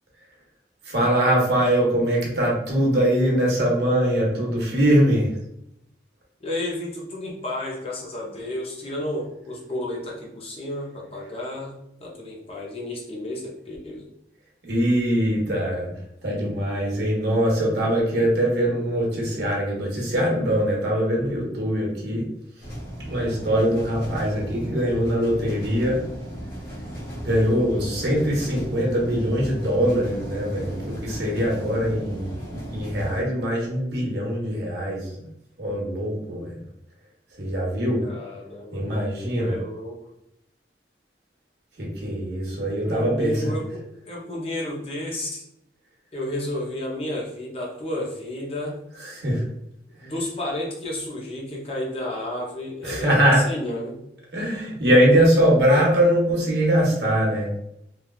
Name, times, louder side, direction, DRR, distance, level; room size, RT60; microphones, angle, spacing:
voice 1, 0.8-5.3 14.6-15.9 16.2-22.3 23.0-26.0 27.2-35.1 35.6-36.6 37.4-38.0 38.7-39.6 41.8-43.5 49.0-49.4 52.8-53.5 54.3-57.5, equal, 75° right, -2 dB, 0.9 m, -22 dB
voice 2, 6.4-11.7 12.0-14.1 38.0-38.8 39.3-40.0 42.8-45.4 46.1-48.8 49.9-54.0, left 1 dB, 35° left, -2 dB, 0.5 m, -32 dB
sound 1, 22.6-33.2, right 1 dB, 70° left, 1.4 m, -35 dB
3.2 x 2.2 x 2.3 m, 0.78 s
head